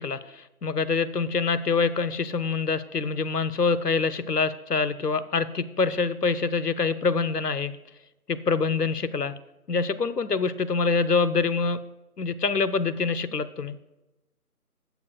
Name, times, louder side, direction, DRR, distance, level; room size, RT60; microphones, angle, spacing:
voice 1, 0.0-7.8 8.3-9.4 9.7-11.8 12.2-13.8, left 4 dB, 90° left, 14 dB, 0.9 m, -25 dB
21.0 x 7.0 x 2.3 m, 1.0 s
figure-of-eight pair, 165°, 46 cm